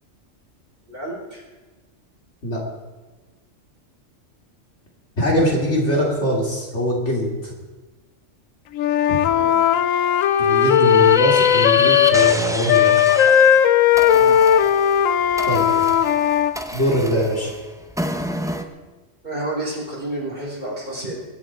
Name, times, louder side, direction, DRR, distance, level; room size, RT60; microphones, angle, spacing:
voice 1, 0.9-1.4 5.9-6.1 9.3-9.7 14.1-14.4 18.5-18.6 19.2-21.1, right 1 dB, 45° right, -3 dB, 4.4 m, -30 dB
voice 2, 5.2-7.5 9.1-9.2 10.4-13.0 15.5-15.7 16.7-17.5, equal, 60° left, -2 dB, 3.2 m, -22 dB
Wind instrument woodwind instrument, 8.7-12.4 12.7-16.5, left 9 dB, 90° left, 1.0 m, -16 dB
sound 1, 10.3-13.6 13.9-18.6, left 1 dB, 5° right, 0.7 m, -28 dB
21.0 x 10.5 x 4.6 m, 1.2 s
omnidirectional pair, 1.3 m